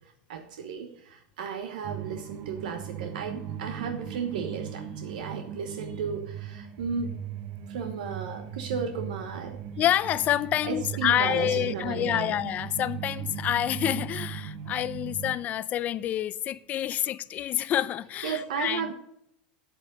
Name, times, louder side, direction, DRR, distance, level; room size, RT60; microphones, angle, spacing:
voice 1, 0.3-7.1 7.7-9.6 10.6-12.3 16.7-16.9 18.2-18.9, right 6 dB, 85° right, 1.1 m, -34 dB
sound 1, 1.8-15.4, right 8 dB, 55° right, 1.0 m, -38 dB
voice 2, 9.8-18.9, left 12 dB, 35° left, 0.6 m, -28 dB
8.5 x 8.2 x 5.2 m
supercardioid pair, 125°, 4 cm